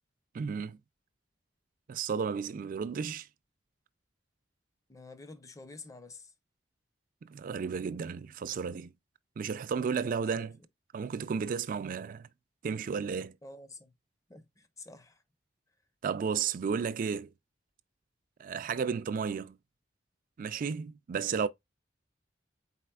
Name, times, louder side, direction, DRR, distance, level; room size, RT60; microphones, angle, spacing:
voice 1, 0.3-0.8 1.9-3.3 7.2-8.9 9.4-10.6 10.9-12.3 12.6-13.4 16.0-17.3 18.4-19.6 20.4-21.5, right 6 dB, 50° right, 0.3 m, -33 dB
voice 2, 4.9-6.3 10.3-10.7 13.4-13.9 14.3-15.2, left 3 dB, 20° left, 0.6 m, -49 dB
4.3 x 4.1 x 2.2 m
head